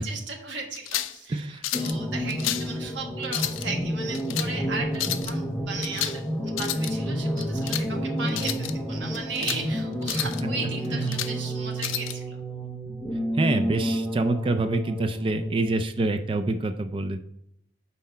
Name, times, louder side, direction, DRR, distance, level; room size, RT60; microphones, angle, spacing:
voice 1, 0.0-12.4, right 4 dB, 60° right, 1 dB, 1.4 m, -36 dB
sound 1, 0.7-1.2 1.6-2.0 2.3-2.7 3.2-3.7 4.1-4.5 4.9-5.3 5.8-6.2 6.5-6.9 7.4-7.9 8.3-8.7 9.1-9.6 10.0-10.4 10.8-11.3 11.8-12.2, left 12 dB, 75° left, 0.4 m, -31 dB
voice 2, 1.3-1.6 10.9-11.1 13.3-17.2, right 2 dB, 25° right, 8 dB, 0.3 m, -26 dB
sound 2, 1.7-15.8, equal, 5° left, 0.6 m, -30 dB
5.7 x 4.2 x 5.4 m, 0.77 s
head